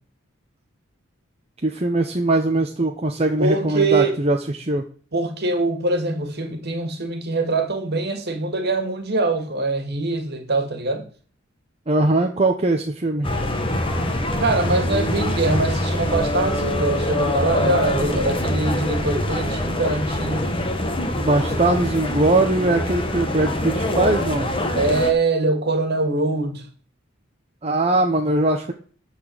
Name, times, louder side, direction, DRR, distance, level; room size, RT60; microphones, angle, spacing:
voice 1, 1.6-4.8 11.9-13.4 21.1-24.5 27.6-28.7, right 2 dB, 30° right, 1.0 m, -21 dB
voice 2, 3.4-4.2 5.1-11.1 14.4-20.5 24.8-26.6, right 2 dB, 55° right, 2.2 m, -23 dB
sound 1, 13.2-25.1, left 1 dB, 25° left, 1.5 m, -24 dB
13.0 x 4.5 x 7.9 m
head